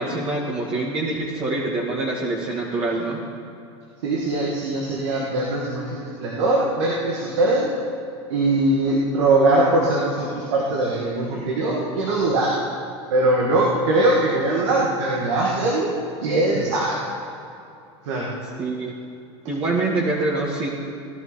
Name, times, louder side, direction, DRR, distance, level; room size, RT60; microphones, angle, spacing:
voice 1, 0.0-3.2 18.6-18.9 19.5-20.7, right 2 dB, 40° right, -3 dB, 2.0 m, -25 dB
voice 2, 4.0-7.7 8.3-12.5 13.1-15.9 16.2-17.0 18.0-18.3, right 2 dB, 80° right, -3 dB, 2.2 m, -21 dB
18.0 x 11.0 x 4.3 m, 2.6 s
hypercardioid pair, 100°, 15 cm